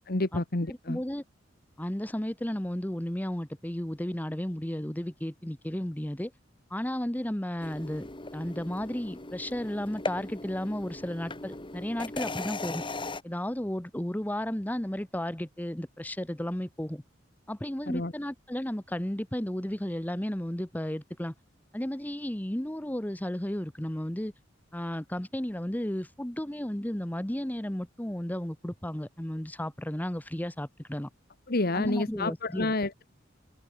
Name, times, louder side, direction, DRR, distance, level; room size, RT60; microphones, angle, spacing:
voice 1, 0.1-1.0 17.9-18.1 31.5-33.1, left 2 dB, 50° left, 1.6 m, -29 dB
voice 2, 0.9-1.2 1.8-6.3 6.7-12.8 13.2-17.0 17.5-21.3 21.7-24.3 24.7-31.1 31.7-32.7, left 1 dB, 10° left, 1.0 m, -33 dB
sound 1, 7.6-13.2, left 2 dB, 25° left, 2.3 m, -38 dB
head